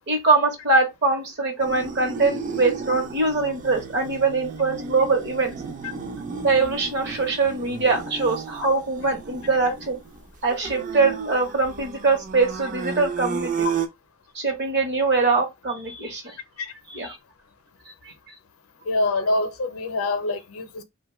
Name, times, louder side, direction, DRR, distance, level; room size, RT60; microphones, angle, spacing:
voice 1, 0.1-5.5 6.4-10.0 10.4-13.7 14.3-16.4 16.9-17.2, right 3 dB, 50° right, 0.9 m, -23 dB
sound 1, 1.6-13.9, right 6 dB, 35° right, 0.4 m, -33 dB
voice 2, 18.9-20.8, left 2 dB, 75° left, 0.6 m, -25 dB
2.9 x 2.2 x 2.9 m
head